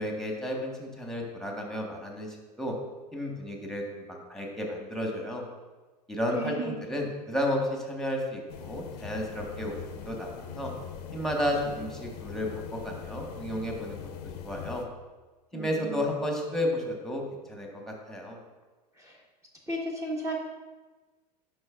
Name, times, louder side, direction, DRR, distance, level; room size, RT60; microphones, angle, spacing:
voice 1, 0.0-2.7 3.1-5.4 6.1-10.7 11.1-14.0 14.4-14.8 15.5-18.4, left 1 dB, ahead, 0 dB, 1.6 m, -32 dB
voice 2, 6.3-6.8 15.5-16.1 19.0-19.2 19.7-20.3, right 1 dB, 15° right, -2 dB, 1.4 m, -34 dB
sound 1, 8.5-14.8, left 7 dB, 70° left, 0.8 m, -41 dB
11.0 x 5.3 x 2.5 m, 1.2 s
hypercardioid pair, 85°, 21 cm